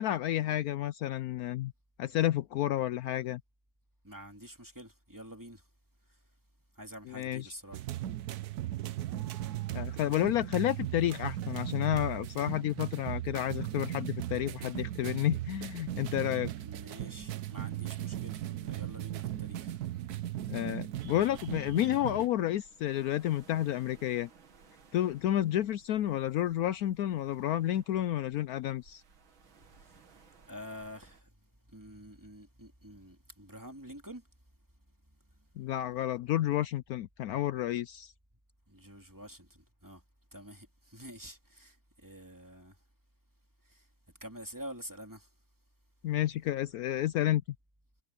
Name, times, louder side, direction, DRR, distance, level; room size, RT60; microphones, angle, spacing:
voice 1, 0.0-1.7 2.0-3.4 7.2-7.4 9.7-16.5 20.5-24.3 24.9-29.0 35.6-38.1 46.0-47.4, left 13 dB, 85° left, 0.8 m, -30 dB
voice 2, 4.0-5.6 6.7-7.9 16.1-19.8 29.8-30.0 30.5-31.3 31.7-34.2 38.7-40.0 40.3-42.8 43.6-43.9 44.2-45.3, equal, 10° right, 2.6 m, -48 dB
sound 1, 7.7-22.3, right 13 dB, 65° right, 1.1 m, -38 dB
sound 2, 17.6-31.2, right 5 dB, 85° right, 3.0 m, -61 dB
omnidirectional pair, 2.1 m